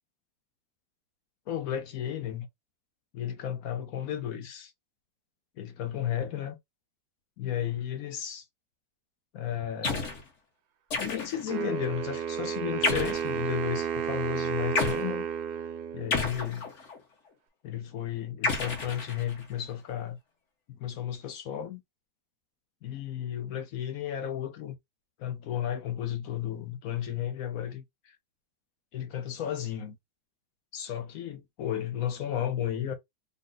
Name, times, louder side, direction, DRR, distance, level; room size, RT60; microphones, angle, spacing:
voice 1, 1.5-2.5 3.1-4.7 5.6-6.6 7.4-8.4 9.3-10.2 11.0-15.3 15.9-16.7 17.6-20.2 20.7-21.8 22.8-24.7 25.2-28.2 28.9-30.0 30.7-32.9, left 10 dB, 65° left, 0.9 m, -33 dB
sound 1, 9.8-10.2 10.9-11.5 12.8-13.3 14.8-15.0 16.1-17.0 18.4-19.5, left 4 dB, 50° left, 1.1 m, -30 dB
Wind instrument woodwind instrument, 11.5-16.5, right 8 dB, 70° right, 1.1 m, -32 dB
3.7 x 2.1 x 3.8 m
omnidirectional pair, 2.0 m